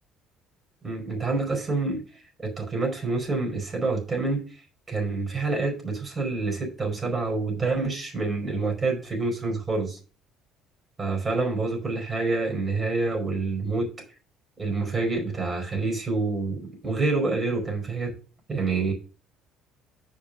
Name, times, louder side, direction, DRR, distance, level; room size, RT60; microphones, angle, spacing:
voice 1, 0.8-2.0 2.4-4.4 4.9-10.0 11.0-13.9 14.6-18.1 18.5-18.9, right 3 dB, 30° right, 2 dB, 4.9 m, -27 dB
6.3 x 5.7 x 6.3 m, 0.34 s
supercardioid pair, 80°, 0 cm